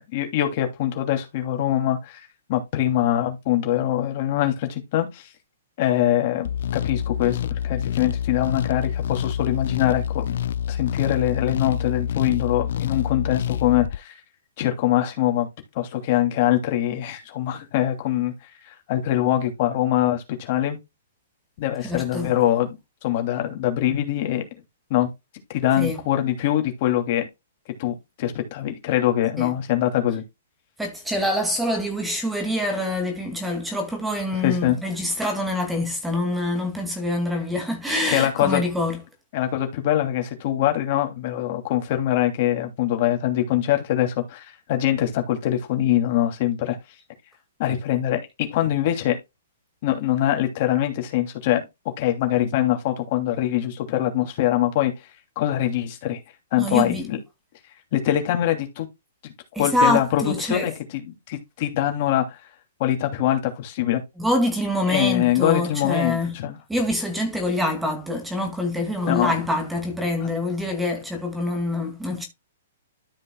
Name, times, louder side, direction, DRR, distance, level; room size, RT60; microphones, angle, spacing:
voice 1, 0.0-2.2 2.5-5.3 5.8-10.3 10.7-14.1 14.6-15.5 15.7-18.3 18.7-20.8 21.6-22.8 23.0-24.4 24.9-25.1 25.5-27.3 27.8-30.2 34.4-34.8 38.1-38.6 39.3-46.8 47.6-49.2 49.8-51.6 52.0-54.9 55.4-56.2 56.5-57.2 57.9-58.9 59.2-59.3 59.6-62.4 62.8-64.0 64.9-66.6 69.1-69.4, left 12 dB, 45° left, 2.8 m, -23 dB
sound 1, 6.4-14.0, left 9 dB, 70° left, 0.4 m, -27 dB
voice 2, 21.8-22.3 25.8-26.0 29.4-29.5 30.8-39.0 56.6-57.1 59.5-60.7 64.2-66.4 66.7-72.2, left 1 dB, 5° right, 2.2 m, -25 dB
13.5 x 5.5 x 2.3 m
hypercardioid pair, 140°, 0 cm